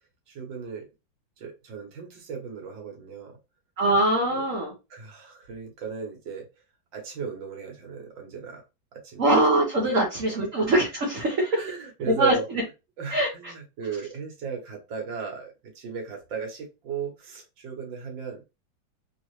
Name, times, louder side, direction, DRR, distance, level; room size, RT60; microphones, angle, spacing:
voice 1, 0.3-0.9 1.4-3.3 4.3-4.4 4.9-6.5 6.9-8.6 8.9-9.3 9.8-10.0 10.3-10.4 11.5-12.5 13.0-18.4, right 6 dB, 85° right, 2 dB, 1.9 m, -36 dB
voice 2, 3.8-4.7 9.2-11.6 12.2-12.3 13.1-13.5, right 1 dB, 50° right, -1 dB, 1.3 m, -23 dB
3.7 x 2.8 x 3.1 m, 0.26 s
omnidirectional pair, 2.0 m